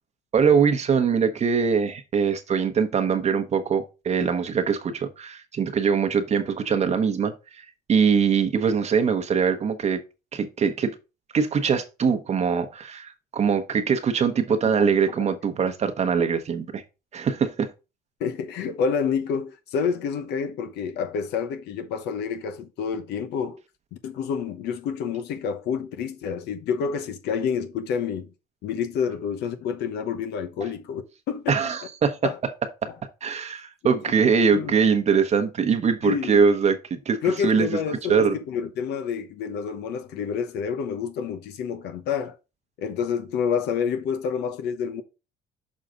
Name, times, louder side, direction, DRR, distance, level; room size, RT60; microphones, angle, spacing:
voice 1, 0.3-7.3 7.9-10.0 10.3-10.9 11.3-16.8 17.1-17.7 31.5-32.3 32.8-32.9 33.2-37.8 38.1-38.4, right 6 dB, 40° right, 1.0 m, -22 dB
voice 2, 18.2-23.6 23.9-28.3 28.6-31.6 32.2-32.4 32.9-33.0 34.5-34.7 36.0-36.4 37.2-42.4 42.8-45.0, left 6 dB, 80° left, 1.0 m, -28 dB
6.4 x 5.6 x 3.8 m
cardioid pair, 110°, 17 cm